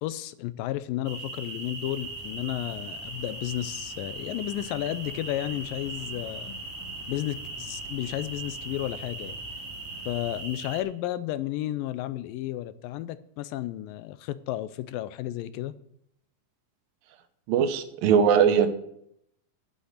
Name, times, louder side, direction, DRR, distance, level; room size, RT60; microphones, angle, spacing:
voice 1, 0.0-6.5 7.1-9.3 10.1-15.7, left 14 dB, 85° left, 15 dB, 2.3 m, -32 dB
sound 1, 1.0-10.8, right 2 dB, 45° right, 2.9 m, -39 dB
sound 2, 1.8-10.4, left 1 dB, 10° left, 3.1 m, -49 dB
voice 2, 17.5-18.7, right 7 dB, 80° right, 9 dB, 2.7 m, -20 dB
11.5 x 8.3 x 6.6 m, 0.74 s
omnidirectional pair, 4.0 m